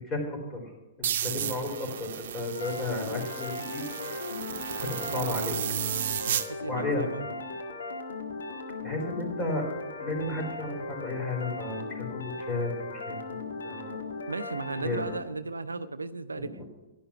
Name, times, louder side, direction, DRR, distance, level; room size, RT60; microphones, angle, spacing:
voice 1, 0.1-0.7 1.0-4.2 4.8-5.6 6.7-7.3 8.8-9.7 9.9-14.0 14.8-15.1 16.3-16.6, left 2 dB, 20° left, 3 dB, 4.2 m, -33 dB
sound 1, 1.0-6.5, right 10 dB, 55° right, 0.9 m, -33 dB
sound 2, 2.5-15.2, left 3 dB, 75° left, 1.6 m, -38 dB
voice 2, 6.5-7.2 14.3-16.6, right 3 dB, 85° right, 12 dB, 0.6 m, -35 dB
11.5 x 10.5 x 5.8 m, 1.1 s
figure-of-eight pair, 115°, 0 cm